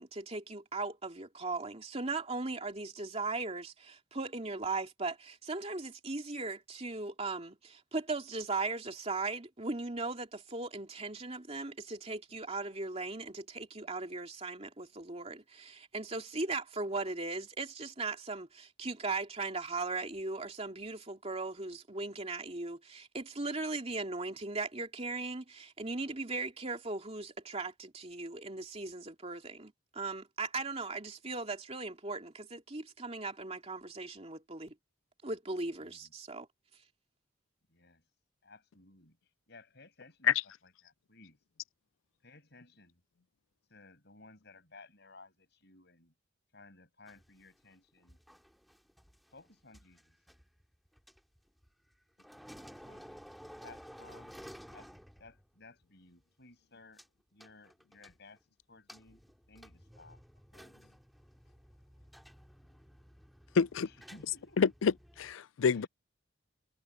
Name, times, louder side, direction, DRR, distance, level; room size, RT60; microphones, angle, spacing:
voice 1, 0.0-34.7 35.2-36.5, right 3 dB, 30° right, 2.8 m, -38 dB
voice 2, 35.7-36.1 37.7-38.0 38.4-39.2 39.5-40.3 40.6-41.4 42.2-43.0 43.7-46.1 46.5-48.2 49.3-50.2 52.5-54.3 54.7-54.9 55.2-57.0 57.3-58.4 58.7-59.2 59.5-60.2 60.5-60.8 63.8-64.6 65.7-65.9, left 3 dB, 60° left, 7.7 m, -57 dB
sound 1, 47.1-51.9 52.2-55.6 55.8-55.9 57.0-57.1 57.4-58.4 58.9-65.3, equal, ahead, 2.4 m, -54 dB
voice 3, 63.6-63.9 64.6-64.9 65.2-65.9, left 6 dB, 85° left, 0.4 m, -27 dB
head